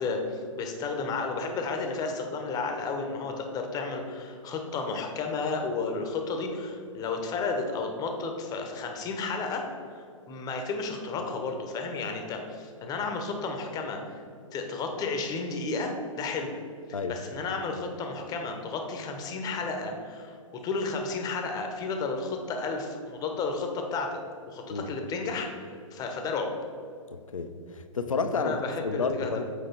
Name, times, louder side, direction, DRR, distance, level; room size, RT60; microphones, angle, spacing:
voice 1, 0.0-9.6 10.3-14.2 14.5-16.5 17.1-24.2 24.5-25.5 25.9-26.5 28.4-29.4, left 4 dB, 20° left, 3 dB, 0.9 m, -32 dB
voice 2, 27.3-29.4, left 4 dB, 75° left, 8 dB, 0.7 m, -30 dB
7.9 x 4.8 x 4.4 m, 2.4 s
figure-of-eight pair, 115°, 17 cm